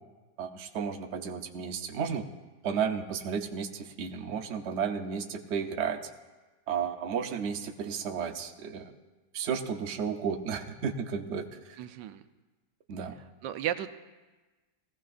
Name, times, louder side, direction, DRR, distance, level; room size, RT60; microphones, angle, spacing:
voice 1, 0.4-2.3 2.6-6.0 6.7-8.9 9.3-11.8 12.9-13.2, right 6 dB, 50° right, 4 dB, 0.9 m, -33 dB
voice 2, 11.8-12.2 13.4-13.9, right 11 dB, 85° right, 10 dB, 1.3 m, -33 dB
20.0 x 15.5 x 2.5 m, 1.2 s
omnidirectional pair, 1.9 m